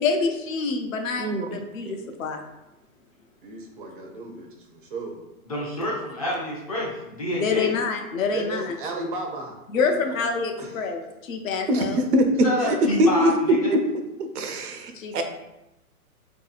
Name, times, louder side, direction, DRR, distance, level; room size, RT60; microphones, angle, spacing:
voice 1, 0.0-2.4 7.3-8.8 9.7-12.0 14.9-15.2, left 5 dB, 60° left, 3 dB, 0.7 m, -27 dB
voice 2, 1.2-1.6 11.7-12.3 12.6-13.3 13.6-13.8 14.3-15.2, equal, 90° right, 5 dB, 0.7 m, -22 dB
voice 3, 3.4-5.2 8.3-10.3 10.6-10.8, right 2 dB, 40° right, 2 dB, 0.4 m, -35 dB
voice 4, 5.5-7.7 12.4-13.7, left 1 dB, 25° left, -4 dB, 0.4 m, -28 dB
3.8 x 2.7 x 2.4 m, 0.94 s
hypercardioid pair, 150°, 45 cm